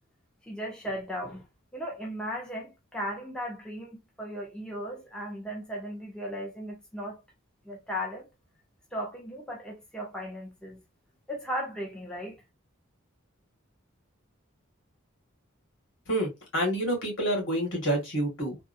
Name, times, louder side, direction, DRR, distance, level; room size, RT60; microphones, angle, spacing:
voice 1, 0.5-1.4 1.7-7.2 7.7-8.3 8.9-10.8 11.3-12.4, equal, 5° left, 0.6 m, -36 dB
voice 2, 16.1-18.6, right 1 dB, 65° left, 1.9 m, -28 dB
3.6 x 2.0 x 2.6 m
head